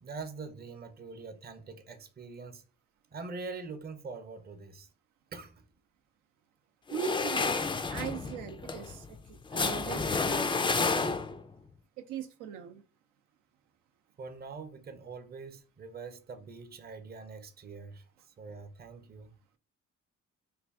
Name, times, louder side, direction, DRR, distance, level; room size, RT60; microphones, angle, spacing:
voice 1, 0.0-2.6 3.1-4.9 5.3-5.6 14.2-19.3, right 4 dB, 30° right, 0.6 m, -44 dB
sound 1, 6.9-11.5, left 4 dB, 15° left, 0.3 m, -30 dB
voice 2, 6.9-7.5 7.9-11.2 12.0-12.8, right 9 dB, 85° right, 0.6 m, -40 dB
3.3 x 2.5 x 3.4 m
cardioid pair, 90°, 30 cm